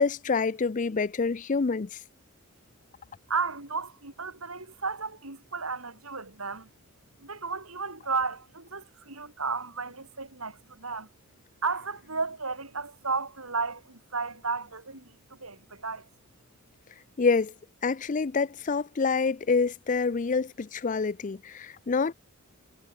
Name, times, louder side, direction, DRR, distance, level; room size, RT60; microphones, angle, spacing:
voice 1, 0.0-2.0 17.2-17.5 17.8-22.1, left 4 dB, 35° left, 0.5 m, -27 dB
voice 2, 3.3-6.7 7.2-11.1 11.6-16.1, right 4 dB, 80° right, 6.8 m, -33 dB
head